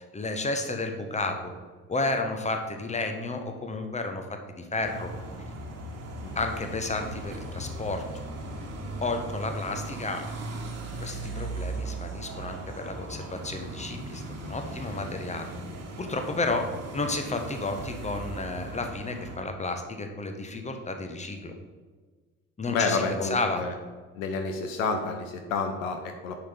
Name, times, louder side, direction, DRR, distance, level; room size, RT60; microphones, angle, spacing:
voice 1, 0.1-1.5 1.9-4.2 4.6-5.1 6.3-8.0 9.0-10.2 11.0-15.5 16.0-16.7 16.9-21.5 22.6-23.6, left 3 dB, 15° left, 5 dB, 1.3 m, -32 dB
sound 1, 4.8-19.4, right 2 dB, 35° right, 1.6 m, -38 dB
voice 2, 22.7-23.7 24.1-26.4, left 4 dB, 70° left, 5 dB, 0.9 m, -29 dB
10.0 x 5.6 x 3.8 m, 1.4 s
figure-of-eight pair, 50°, 41 cm